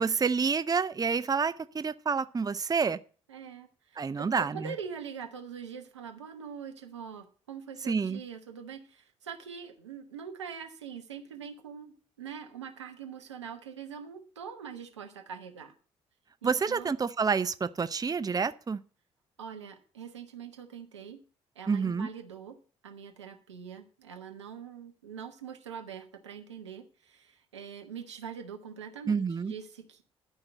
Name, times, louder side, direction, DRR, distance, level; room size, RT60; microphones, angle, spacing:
voice 1, 0.0-3.0 4.0-4.7 7.9-8.2 16.4-18.8 21.7-22.1 29.1-29.5, right 5 dB, 25° right, 0.7 m, -28 dB
voice 2, 3.3-15.7 16.4-16.9 19.4-21.2 21.5-22.6 22.8-30.0, right 7 dB, 90° right, 1.2 m, -43 dB
12.0 x 5.7 x 7.9 m
hypercardioid pair, 45°, 14 cm